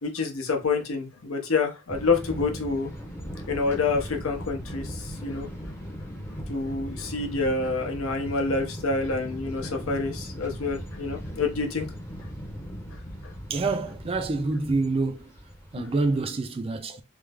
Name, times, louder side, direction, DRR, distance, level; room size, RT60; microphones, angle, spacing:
voice 1, 0.0-2.9 3.3-5.5 6.5-11.9 13.2-13.3 15.7-15.9, left 4 dB, 80° left, 0.8 m, -28 dB
sound 1, 1.9-16.3, equal, 10° left, 0.6 m, -38 dB
voice 2, 13.5-15.3 15.7-17.0, right 3 dB, 25° right, 0.3 m, -27 dB
3.2 x 2.0 x 3.5 m
head